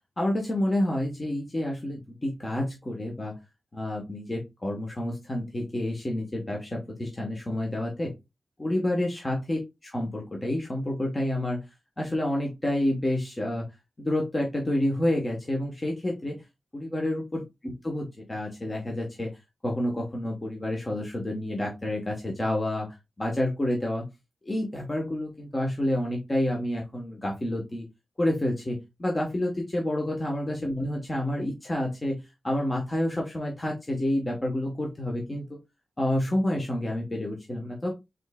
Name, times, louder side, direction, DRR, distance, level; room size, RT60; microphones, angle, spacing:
voice 1, 0.2-3.4 3.7-8.1 8.6-11.6 12.0-13.7 14.0-16.4 16.7-19.3 19.6-22.9 23.2-24.1 24.4-27.8 28.2-35.5 36.0-37.9, left 1 dB, 25° left, 0 dB, 1.0 m, -29 dB
5.2 x 3.8 x 2.2 m, 0.23 s
wide cardioid pair, 125°, 0 cm